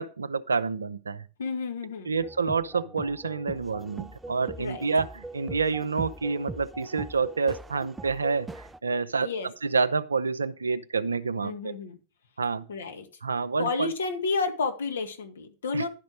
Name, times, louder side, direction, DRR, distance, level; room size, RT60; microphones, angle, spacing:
voice 1, 0.0-1.2 2.1-11.8 12.4-12.7 13.2-13.9 15.7-15.8, right 4 dB, 75° right, 0.5 m, -28 dB
voice 2, 1.4-2.1 4.6-4.8 9.2-9.5 11.4-12.0 12.7-13.1 13.6-15.9, left 4 dB, 65° left, 1.7 m, -31 dB
sound 1, 2.2-8.8, right 2 dB, 10° right, 0.5 m, -41 dB
11.0 x 5.2 x 6.1 m
figure-of-eight pair, 90°, 0 cm